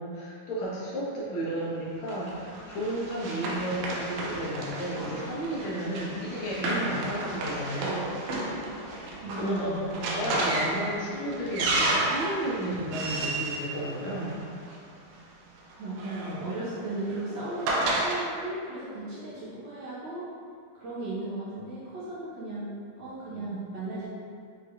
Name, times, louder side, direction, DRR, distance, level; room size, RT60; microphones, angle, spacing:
voice 1, 0.0-8.1 9.4-14.5 23.4-23.6, right 1 dB, 70° left, -7 dB, 2.1 m, -33 dB
Run, 2.1-14.7 15.7-18.2, right 2 dB, 85° right, 2.0 m, -32 dB
voice 2, 9.2-10.4 15.8-20.3 20.7-24.1, right 2 dB, 65° right, -11 dB, 1.2 m, -36 dB
5.7 x 3.1 x 2.5 m, 2.2 s
omnidirectional pair, 3.6 m